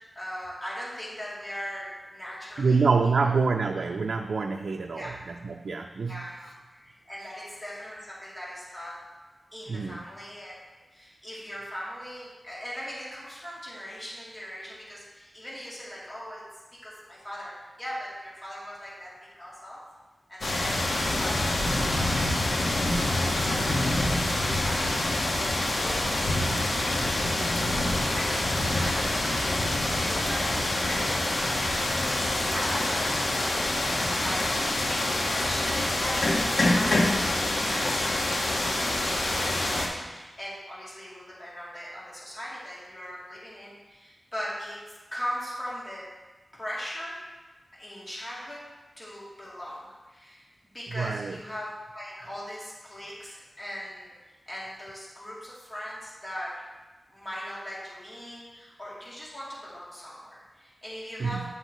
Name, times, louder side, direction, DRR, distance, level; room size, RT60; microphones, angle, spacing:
voice 1, 0.1-2.9 3.2-3.3 5.0-5.1 6.1-8.9 9.5-10.6 10.9-16.4 16.7-19.8 20.3-27.2 28.0-31.0 31.4-44.8 45.1-46.0 46.5-47.2 47.7-48.6 49.0-50.5 50.7-54.1 54.5-56.5 57.1-61.4, equal, 25° left, -7 dB, 2.8 m, -40 dB
voice 2, 2.6-6.3 7.2-7.3 9.7-10.0 50.9-51.4 61.2-61.4, right 4 dB, 75° right, 3 dB, 0.4 m, -26 dB
sound 1, 20.4-39.9, left 1 dB, 75° left, 1.4 m, -26 dB
11.0 x 8.0 x 3.1 m, 1.2 s
wide cardioid pair, 100°, 0 cm